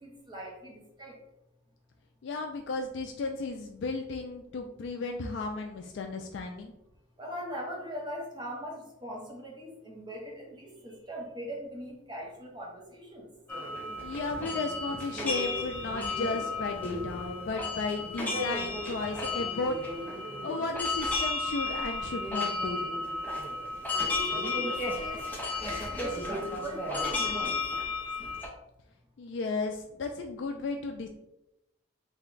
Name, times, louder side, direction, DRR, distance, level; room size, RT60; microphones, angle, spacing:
voice 1, 0.0-1.1 7.2-13.2 23.9-25.2 25.5-27.5, right 1 dB, 20° right, -2 dB, 0.8 m, -40 dB
voice 2, 2.2-6.7 14.0-19.8 20.4-22.8 29.2-31.1, left 3 dB, 60° left, 3 dB, 0.3 m, -34 dB
sound 1, 13.5-28.5, left 3 dB, 10° left, 0.5 m, -33 dB
3.4 x 2.2 x 3.7 m, 0.87 s
head